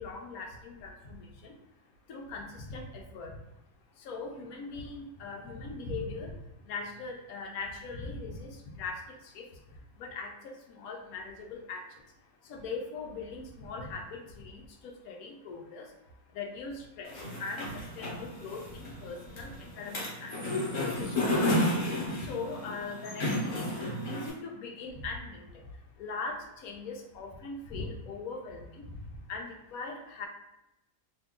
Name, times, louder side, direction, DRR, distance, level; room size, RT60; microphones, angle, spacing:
voice 1, 0.0-1.5 2.1-3.3 4.1-6.3 6.7-9.0 9.4-9.5 10.0-10.3 10.8-11.8 12.5-14.6 15.1-15.9 16.4-17.1 17.4-17.6 18.0-19.5 19.8-20.4 20.8-21.6 22.2-23.7 24.1-25.4 26.0-26.4 26.6-28.8 29.3-30.3, left 4 dB, 80° left, 2 dB, 1.0 m, -40 dB
sound 1, 17.1-24.3, left 1 dB, 60° left, 1.2 m, -32 dB
2.8 x 2.6 x 3.5 m, 0.88 s
omnidirectional pair, 1.6 m